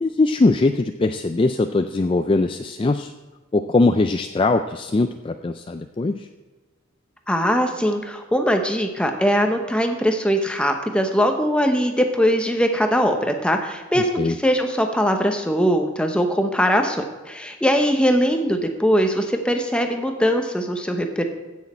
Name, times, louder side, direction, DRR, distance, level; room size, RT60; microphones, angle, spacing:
voice 1, 0.0-3.1 3.5-6.3 14.0-14.4, left 3 dB, 25° left, 7 dB, 0.3 m, -21 dB
voice 2, 7.3-21.2, equal, 5° left, 5 dB, 0.9 m, -21 dB
15.5 x 6.4 x 4.3 m, 1.3 s
head